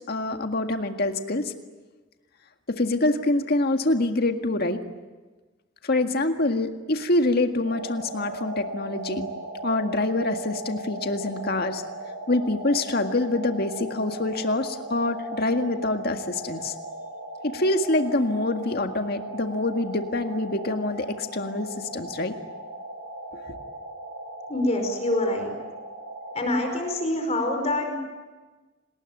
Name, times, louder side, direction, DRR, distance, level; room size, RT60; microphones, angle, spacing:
voice 1, 0.1-1.5 2.7-4.8 5.8-9.3 9.6-11.8 12.3-16.7 17.4-22.3 23.5-23.6, left 2 dB, 55° left, 6 dB, 1.9 m, -25 dB
sound 1, 7.6-26.8, right 1 dB, 80° right, 5.6 m, -38 dB
voice 2, 24.5-25.5 26.3-28.1, left 1 dB, 35° left, 5 dB, 5.0 m, -26 dB
28.5 x 20.0 x 9.2 m, 1.3 s
head